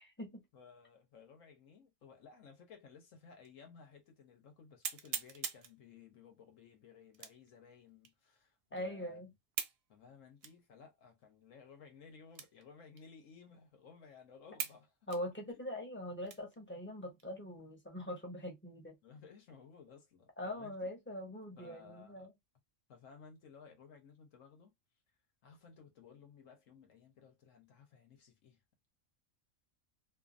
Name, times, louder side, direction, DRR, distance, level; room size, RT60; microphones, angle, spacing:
voice 1, 0.0-0.4 8.7-9.3 15.1-19.0 20.4-22.3, left 1 dB, 15° left, 0.6 m, -42 dB
voice 2, 0.5-9.2 9.9-15.1 15.5-15.7 19.0-20.7 21.6-22.3 22.9-24.7 25.4-28.6, left 6 dB, 80° left, 1.3 m, -58 dB
sound 1, 3.4-3.5 4.1-4.2 4.8-5.8 7.1-7.5 8.0-8.1 9.5-9.8 10.4-10.6 11.2-11.3 12.3-12.7 13.0-13.1 13.7-13.8 14.6-14.8 15.1-16.6 17.1-17.2 17.7-18.2, right 8 dB, 60° right, 0.7 m, -42 dB
2.6 x 2.5 x 2.5 m
omnidirectional pair, 1.3 m